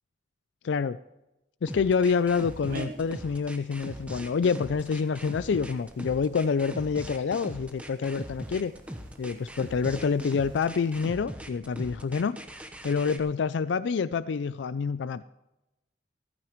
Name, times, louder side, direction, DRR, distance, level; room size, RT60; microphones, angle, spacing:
voice 1, 0.6-1.0 1.6-8.7 9.2-12.4 12.8-15.2, left 5 dB, 90° left, 15 dB, 0.4 m, -27 dB
sound 1, 1.7-13.2, equal, 5° right, 1.0 m, -40 dB
sound 2, 2.1-11.1, right 2 dB, 50° right, 1.5 m, -49 dB
15.0 x 14.0 x 3.1 m, 0.96 s
head